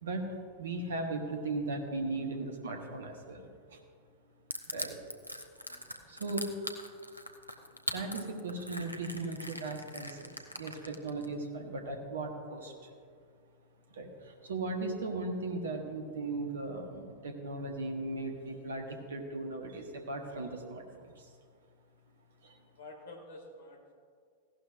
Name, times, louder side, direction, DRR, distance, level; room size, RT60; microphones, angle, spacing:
voice 1, 0.0-3.8 4.7-5.0 6.1-6.5 7.9-12.9 13.9-21.3 22.4-22.6, right 2 dB, 65° right, 4 dB, 1.2 m, -37 dB
Crushing, 4.5-11.3, equal, 90° right, 0.8 m, -40 dB
voice 2, 22.8-23.9, left 2 dB, 60° left, 2 dB, 2.1 m, -50 dB
15.5 x 12.0 x 2.6 m, 2.1 s
figure-of-eight pair, 90°, 0 cm